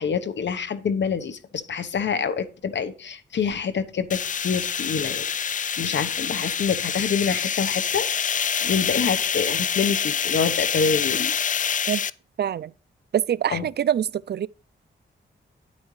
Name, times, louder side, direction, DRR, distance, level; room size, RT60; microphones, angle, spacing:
voice 1, 0.0-11.3 13.5-13.7, left 6 dB, 65° left, 1.0 m, -27 dB
sound 1, 4.1-12.1, left 8 dB, 40° left, 0.4 m, -26 dB
voice 2, 12.4-12.7 13.1-14.5, right 9 dB, 55° right, 0.4 m, -24 dB
9.7 x 8.5 x 3.2 m
cardioid pair, 90°, 20 cm